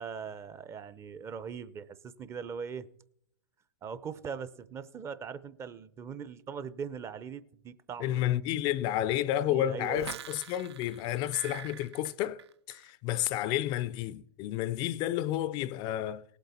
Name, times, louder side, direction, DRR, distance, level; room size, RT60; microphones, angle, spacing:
voice 1, 0.0-2.9 3.8-8.3 9.4-10.2, right 6 dB, 20° right, 0.5 m, -41 dB
voice 2, 8.0-12.4 12.7-16.2, left 13 dB, 35° left, 0.4 m, -31 dB
sound 1, 9.8-12.9 13.2-13.6, right 9 dB, 85° right, 0.4 m, -45 dB
18.0 x 8.0 x 4.2 m
hypercardioid pair, 130°, 14 cm